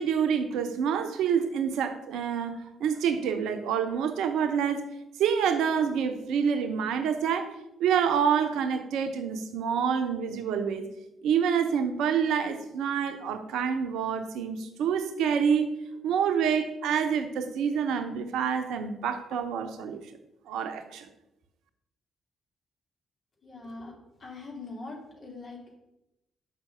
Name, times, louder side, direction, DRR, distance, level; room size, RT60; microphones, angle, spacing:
voice 1, 0.0-4.8 5.2-7.5 7.8-10.9 11.2-15.7 16.0-20.0 20.5-21.1, right 7 dB, 70° right, 8 dB, 0.8 m, -27 dB
voice 2, 23.4-25.7, left 3 dB, 50° left, -1 dB, 2.8 m, -42 dB
6.0 x 5.9 x 6.8 m, 0.88 s
hypercardioid pair, 40°, 0 cm